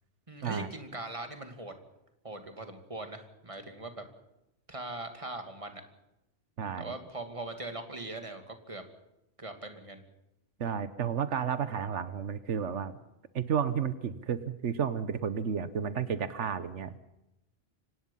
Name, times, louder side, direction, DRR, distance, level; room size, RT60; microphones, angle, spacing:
voice 1, 0.3-1.7 2.2-4.1 4.7-5.8 6.8-8.8 9.4-10.0, right 2 dB, 30° right, 6 dB, 2.7 m, -41 dB
voice 2, 6.6-6.9 10.6-12.9 13.3-17.0, right 7 dB, 90° right, 13 dB, 1.4 m, -32 dB
25.5 x 19.0 x 5.6 m, 0.90 s
omnidirectional pair, 1.2 m